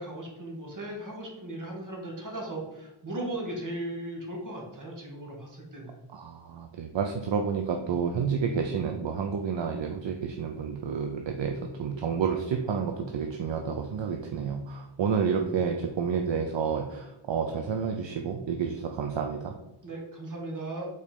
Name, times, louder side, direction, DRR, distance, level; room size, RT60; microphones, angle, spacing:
voice 1, 0.0-6.0 19.8-20.9, right 1 dB, 40° right, -1 dB, 1.9 m, -37 dB
voice 2, 6.1-19.6, right 6 dB, 65° right, 4 dB, 0.7 m, -30 dB
5.2 x 4.1 x 5.2 m, 0.95 s
wide cardioid pair, 95°, 48 cm